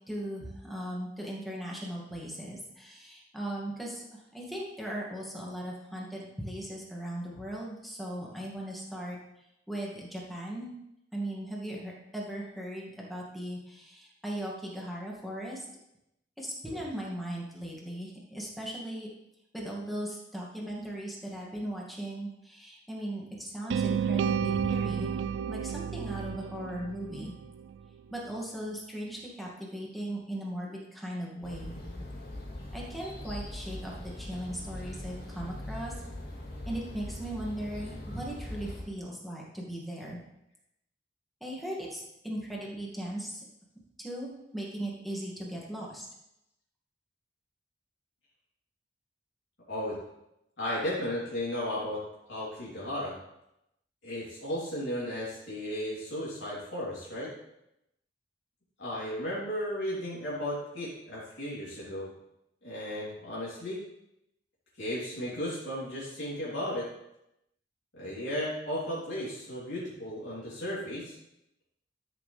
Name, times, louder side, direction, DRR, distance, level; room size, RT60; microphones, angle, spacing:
voice 1, 0.1-9.2 9.7-10.8 11.1-15.6 16.4-19.1 19.5-25.1 25.5-27.3 28.1-31.8 32.7-35.9 36.7-40.2 41.4-43.4 44.0-46.1, right 1 dB, ahead, -4 dB, 2.1 m, -38 dB
sound 1, 23.7-27.8, right 7 dB, 80° right, 0.3 m, -31 dB
sound 2, 31.4-38.8, left 1 dB, 60° left, 2.5 m, -41 dB
voice 2, 50.6-52.0 52.3-53.1 54.0-57.3 58.8-62.1 62.6-63.8 64.8-66.9 68.0-71.2, left 1 dB, 75° left, -8 dB, 3.4 m, -35 dB
13.0 x 6.5 x 3.4 m, 0.84 s
head